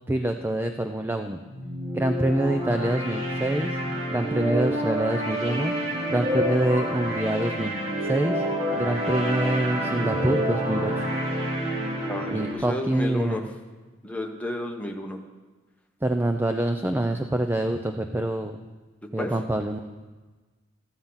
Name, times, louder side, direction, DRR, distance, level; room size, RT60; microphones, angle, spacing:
voice 1, 0.0-1.4 1.9-3.8 4.1-5.7 6.1-8.4 8.7-11.1 12.3-13.4 16.0-18.6 19.1-19.8, right 1 dB, 10° right, 5 dB, 0.5 m, -26 dB
sound 1, 1.5-12.5, equal, 35° right, 2.6 m, -28 dB
voice 2, 12.1-13.4 14.0-15.2 19.2-19.3, left 1 dB, 5° left, 2 dB, 1.1 m, -32 dB
13.5 x 9.1 x 5.6 m, 1.3 s
head